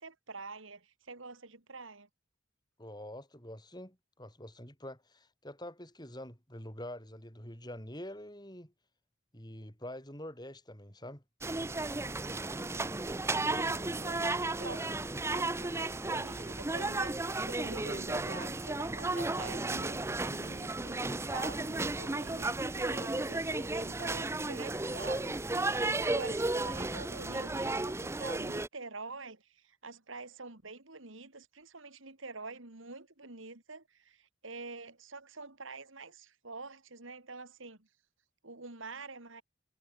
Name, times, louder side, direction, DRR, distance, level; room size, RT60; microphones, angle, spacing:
voice 1, 0.0-2.1 13.4-25.7 26.0-37.9 38.4-39.4, right 3 dB, 70° right, 3.1 m, -47 dB
voice 2, 2.8-8.7 9.3-11.2, left 1 dB, 20° left, 7.0 m, -46 dB
sound 1, 11.4-28.7, right 2 dB, 15° right, 0.6 m, -34 dB
head